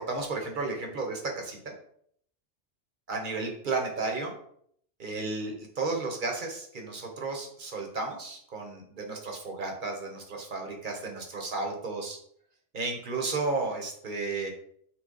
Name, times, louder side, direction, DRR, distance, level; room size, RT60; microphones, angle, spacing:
voice 1, 0.0-1.7 3.1-4.3 5.0-12.2 12.7-14.5, right 3 dB, 50° right, 2 dB, 1.0 m, -33 dB
5.9 x 2.3 x 3.8 m, 0.65 s
omnidirectional pair, 1.2 m